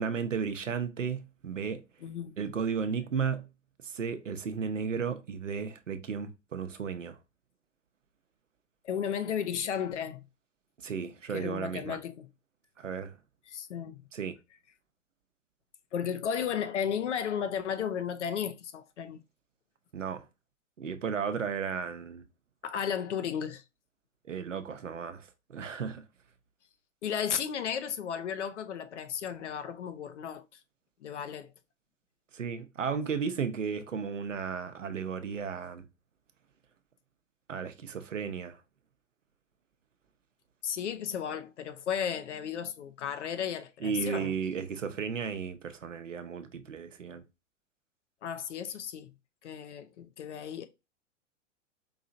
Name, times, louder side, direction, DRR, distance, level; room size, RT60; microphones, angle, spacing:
voice 1, 0.0-1.8 2.4-3.5 3.8-7.2 10.8-12.0 12.8-13.2 14.1-14.3 19.9-20.2 20.8-22.2 24.3-26.0 32.3-35.9 37.5-38.6 43.8-47.2, right 6 dB, 80° right, 0.7 m, -34 dB
voice 2, 2.0-2.4 8.8-10.2 11.3-12.3 13.5-14.0 15.9-19.2 22.6-23.6 27.0-30.6 31.0-31.5 40.6-44.3 48.2-49.1 49.4-50.6, left 8 dB, 65° left, 0.7 m, -34 dB
4.8 x 2.8 x 2.6 m
figure-of-eight pair, 100°, 37 cm